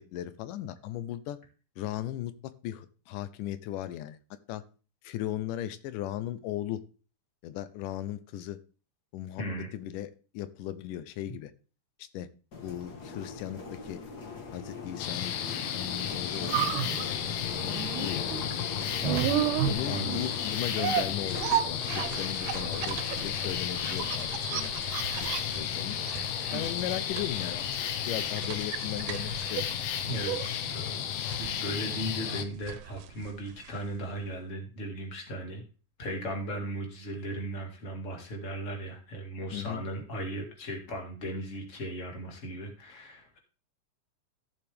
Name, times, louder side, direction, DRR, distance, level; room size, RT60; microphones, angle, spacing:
voice 1, 0.0-1.4 1.8-2.3 2.6-4.2 4.5-4.6 5.0-6.8 7.4-8.6 9.1-9.4 9.7-11.5 12.0-12.3 12.6-14.0 14.5-17.2 17.5-18.6 19.0-19.1 19.7-24.7 25.2-25.3 25.6-26.0 26.5-29.7 39.5-39.8, left 12 dB, 90° left, 13 dB, 2.3 m, -37 dB
voice 2, 9.4-9.7 18.4-18.5 19.0-19.2 19.9-20.3 26.7-26.9 30.1-35.6 36.0-43.4, right 1 dB, 25° left, 2 dB, 2.0 m, -37 dB
sound 1, 12.5-28.5, left 4 dB, 45° left, 1.3 m, -42 dB
sound 2, 15.0-32.5, left 9 dB, 70° left, 1.5 m, -33 dB
sound 3, 16.0-34.0 34.3-34.4, right 11 dB, 80° right, 2.2 m, -34 dB
14.5 x 7.1 x 3.4 m, 0.36 s
omnidirectional pair, 3.6 m